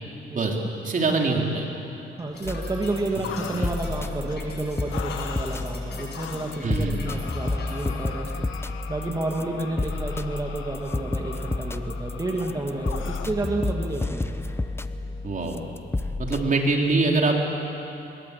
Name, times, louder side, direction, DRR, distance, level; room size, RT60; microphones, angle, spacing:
voice 1, 0.3-0.6 2.2-8.5 8.9-14.4, right 2 dB, 20° right, 0 dB, 2.4 m, -30 dB
voice 2, 0.8-1.7 3.5-3.7 6.6-6.9 15.2-15.6 16.2-17.4, right 3 dB, 40° right, 1 dB, 3.7 m, -23 dB
sound 1, 2.2-7.9, left 4 dB, 55° left, 7.4 m, -45 dB
sound 2, 2.4-16.5, left 2 dB, 10° left, 0.9 m, -31 dB
sound 3, 3.2-3.8 4.3-4.4 4.9-5.7 6.1-6.7 7.1-13.3, left 8 dB, 80° left, 1.6 m, -40 dB
21.5 x 21.5 x 8.5 m, 3.0 s
cardioid pair, 90°, 20 cm